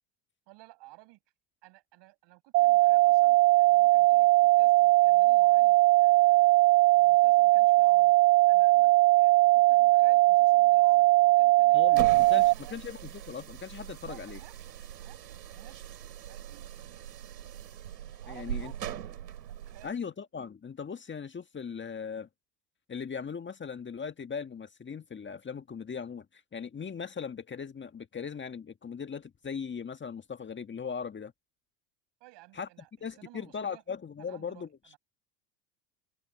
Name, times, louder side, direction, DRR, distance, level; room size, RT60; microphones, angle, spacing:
voice 1, 0.5-1.2 1.6-8.1 8.4-12.8 14.0-15.9 16.3-17.5 18.2-19.0 19.4-20.1 32.2-33.8 34.3-35.0, right 20 dB, 60° right, 6.8 m, -55 dB
sound 1, 2.5-12.5, right 19 dB, 30° right, 0.3 m, -20 dB
voice 2, 11.7-14.4 18.3-18.7 19.8-22.3 22.9-31.3 32.5-32.7 33.0-34.7, left 6 dB, 25° left, 1.8 m, -39 dB
sound 2, 11.8-19.9, right 10 dB, 85° right, 4.7 m, -41 dB
hypercardioid pair, 80°, 49 cm